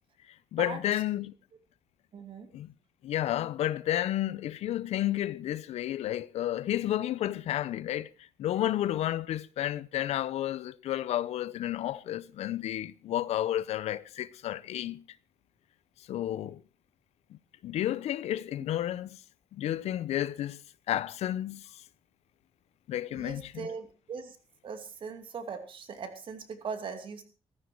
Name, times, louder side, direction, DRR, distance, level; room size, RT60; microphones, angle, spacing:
voice 1, 0.5-1.3 2.5-2.7 3.0-15.0 16.1-16.6 17.6-19.1 19.5-20.6 20.9-21.8 22.9-23.7, left 12 dB, 90° left, 0.7 m, -31 dB
voice 2, 2.1-2.5 23.1-24.4 24.6-27.2, right 5 dB, 55° right, 2.6 m, -40 dB
15.0 x 14.5 x 4.6 m
cardioid pair, 140°, 11 cm